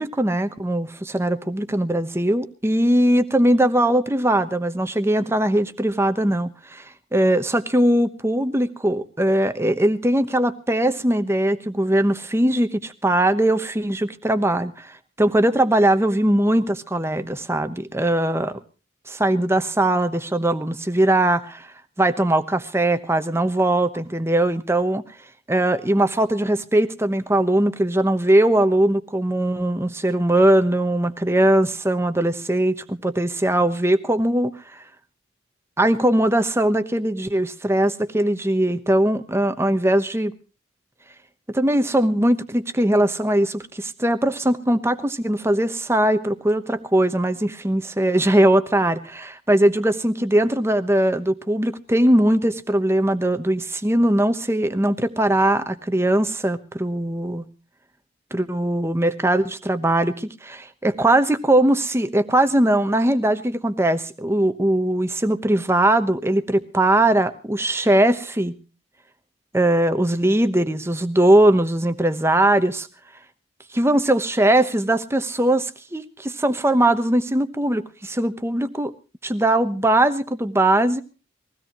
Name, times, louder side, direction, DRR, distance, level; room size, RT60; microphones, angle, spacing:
voice 1, 0.0-18.5 19.1-21.7 22.0-25.0 25.5-34.8 35.8-40.3 41.5-57.4 58.3-68.5 69.5-72.9 73.7-78.9 79.2-81.0, right 1 dB, 15° right, 10 dB, 1.0 m, -20 dB
22.0 x 16.5 x 3.0 m, 0.33 s
head